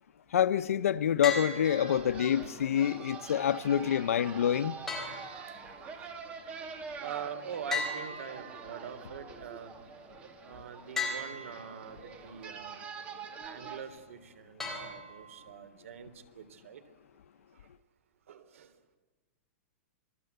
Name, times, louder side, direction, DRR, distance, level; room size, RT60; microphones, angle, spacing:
voice 1, 0.3-4.8, left 9 dB, 90° left, 0.8 m, -27 dB
sound 1, 1.2-2.2 4.9-6.0 7.7-8.9 11.0-11.9 14.6-15.5, left 3 dB, 5° left, 3.9 m, -37 dB
sound 2, 1.6-13.8, right 5 dB, 15° right, 2.1 m, -45 dB
voice 2, 7.0-9.7 10.4-12.8 13.4-16.8 18.3-18.7, right 7 dB, 75° right, 3.2 m, -43 dB
27.0 x 22.0 x 8.1 m
supercardioid pair, 175°, 7 cm